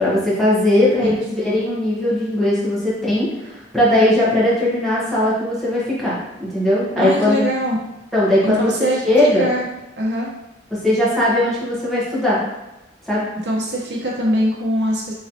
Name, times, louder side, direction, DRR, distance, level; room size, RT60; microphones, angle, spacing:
voice 1, 0.0-7.5 8.1-8.7 9.0-9.5 10.7-12.4 13.1-13.3, left 1 dB, ahead, -9 dB, 1.1 m, -19 dB
voice 2, 7.0-7.8 8.4-9.7 10.0-10.3 13.4-15.1, equal, 70° right, -4 dB, 0.9 m, -22 dB
3.9 x 3.1 x 2.8 m, 0.98 s
head